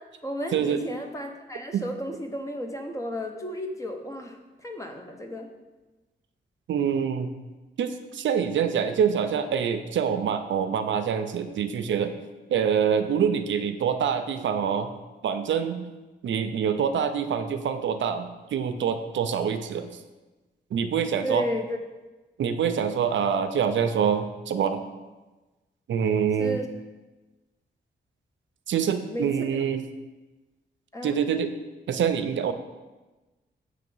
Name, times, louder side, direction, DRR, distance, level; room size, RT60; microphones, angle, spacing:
voice 1, 0.2-5.5 21.2-21.8 26.4-26.7 29.1-29.5 30.9-31.2, equal, 15° left, 3 dB, 0.7 m, -33 dB
voice 2, 6.7-7.3 7.8-12.1 12.5-14.9 15.2-15.8 16.2-20.0 20.7-21.5 22.4-24.8 25.9-26.6 28.7-29.8 31.0-31.5 31.9-32.5, right 7 dB, 80° right, 8 dB, 0.5 m, -25 dB
6.8 x 3.2 x 5.4 m, 1.2 s
wide cardioid pair, 105°, 19 cm